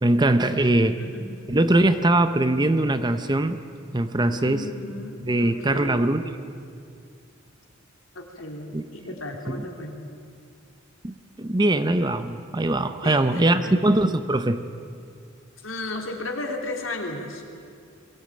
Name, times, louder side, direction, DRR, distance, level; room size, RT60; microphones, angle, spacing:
voice 1, 0.0-1.0 1.5-3.6 3.9-4.7 5.2-6.2 8.7-8.8 9.5-9.6 11.0-14.6, right 1 dB, 20° right, 10 dB, 0.7 m, -21 dB
voice 2, 1.0-1.3 4.3-6.1 8.1-10.0 13.0-13.8 15.6-17.4, left 2 dB, 75° left, 1 dB, 3.2 m, -34 dB
22.0 x 17.0 x 8.9 m, 2.3 s
head